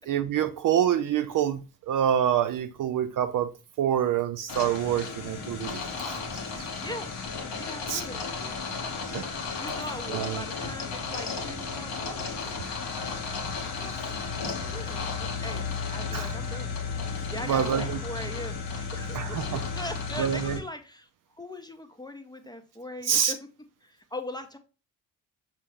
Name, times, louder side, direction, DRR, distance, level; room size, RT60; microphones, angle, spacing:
voice 1, 0.1-3.5 3.8-6.2 6.6-6.7 7.9-8.0 9.1-9.3 10.1-10.4 14.4-14.5 16.1-16.3 17.5-18.0 19.1-19.6 20.2-20.6 23.0-23.3, right 9 dB, 45° right, 0.5 m, -26 dB
sound 1, 4.5-20.6, left 5 dB, 65° left, 1.2 m, -34 dB
voice 2, 7.6-9.1 9.6-12.9 13.7-16.8 17.3-21.1 21.3-23.4 23.8-24.6, left 1 dB, 10° left, 0.7 m, -41 dB
5.4 x 2.7 x 3.3 m
hypercardioid pair, 45°, 45 cm